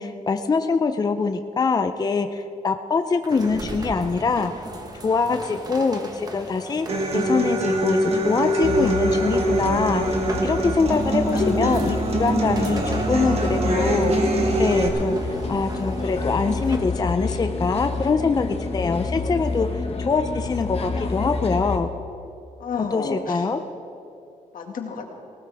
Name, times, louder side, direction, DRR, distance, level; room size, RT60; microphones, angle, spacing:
voice 1, 0.0-4.5 5.0-6.9 7.1-12.8 13.1-14.1 14.6-15.2 15.5-21.9 22.9-23.6, left 4 dB, 30° left, 8 dB, 0.5 m, -24 dB
sound 1, 3.2-17.0, right 1 dB, 30° right, 1.3 m, -37 dB
Human voice / Acoustic guitar, 6.9-14.9, right 1 dB, 45° right, 1.9 m, -23 dB
sound 2, 8.6-21.8, left 3 dB, 45° left, 1.2 m, -28 dB
voice 2, 11.2-11.5 12.4-13.9 22.6-23.5 24.5-25.1, left 5 dB, 90° left, 2 dB, 1.9 m, -34 dB
19.0 x 18.5 x 3.5 m, 2.6 s
wide cardioid pair, 150°, 14 cm